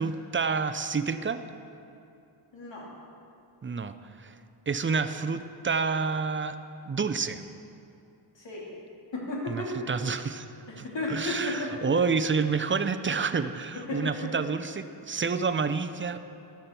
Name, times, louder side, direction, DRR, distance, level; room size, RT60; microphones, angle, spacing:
voice 1, 0.0-1.4 3.6-4.3 4.7-6.6 6.9-7.4 9.5-10.5 10.8-16.2, right 5 dB, 30° right, 10 dB, 0.4 m, -29 dB
voice 2, 2.5-2.9 8.3-8.8 9.1-9.8 10.7-11.8 13.7-14.3, left 2 dB, 75° left, -4 dB, 2.6 m, -34 dB
14.5 x 11.5 x 4.4 m, 2.6 s
wide cardioid pair, 160°, 44 cm